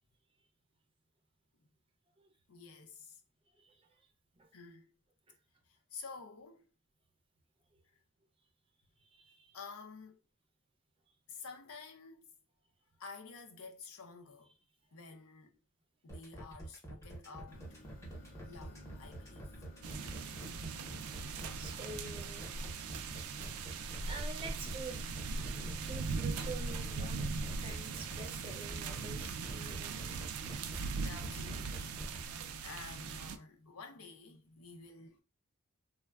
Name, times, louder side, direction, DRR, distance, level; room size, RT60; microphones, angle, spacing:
voice 1, 2.5-3.2 4.5-4.9 5.6-6.7 7.8-8.0 9.5-10.2 11.3-12.3 13.0-14.5 14.9-15.6 16.0-17.8 18.4-19.5 22.3-22.6 27.4-27.6 28.6-28.7 30.1-30.4 30.7-35.2, left 4 dB, 90° left, 0.6 m, -51 dB
voice 2, 3.6-4.1 4.4-4.5 9.0-9.6 20.2-20.3 21.6-22.8 24.0-27.2 27.6-30.2, right 3 dB, 25° right, 0.5 m, -48 dB
sound 1, 16.1-32.2, right 1 dB, 15° left, 0.7 m, -47 dB
sound 2, 17.5-28.3, equal, 40° left, 0.4 m, -56 dB
sound 3, 19.8-33.4, right 4 dB, 90° right, 0.4 m, -40 dB
3.3 x 2.1 x 2.2 m
head